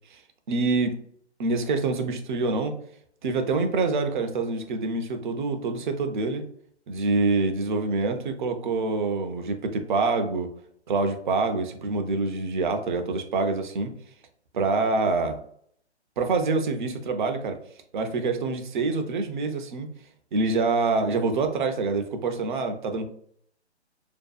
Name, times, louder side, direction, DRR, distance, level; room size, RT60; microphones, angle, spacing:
voice 1, 0.5-1.0 1.4-2.7 3.2-6.4 6.9-10.5 10.9-13.9 14.5-15.4 16.2-17.6 17.9-19.9 20.3-23.1, right 3 dB, 45° right, 6 dB, 0.4 m, -26 dB
2.6 x 2.2 x 2.3 m, 0.63 s
hypercardioid pair, 145°, 34 cm